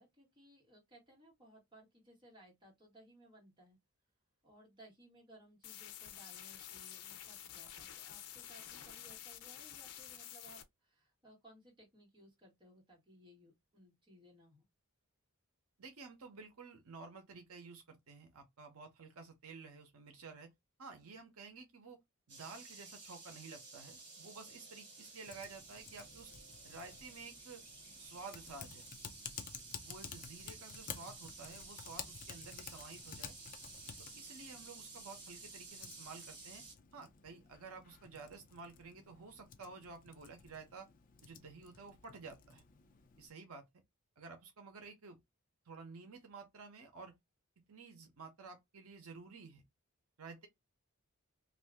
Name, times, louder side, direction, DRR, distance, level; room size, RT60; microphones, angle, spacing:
voice 1, 0.0-3.8 4.4-14.7, right 1 dB, 20° right, 1.5 m, -62 dB
sound 1, 5.6-10.6, left 10 dB, 90° left, 0.6 m, -50 dB
voice 2, 15.8-20.5 20.8-22.0 22.3-26.3 26.6-27.6 28.0-28.9 29.8-33.3 34.2-36.6 36.9-40.9 41.2-42.6 43.2-43.6 44.2-45.2 45.7-47.1 47.7-49.6 50.2-50.5, right 4 dB, 75° right, 0.8 m, -52 dB
sound 2, 22.3-36.7, right 3 dB, 50° right, 1.5 m, -53 dB
Typing, 25.3-43.3, left 7 dB, 40° left, 0.5 m, -53 dB
2.7 x 2.5 x 3.4 m
head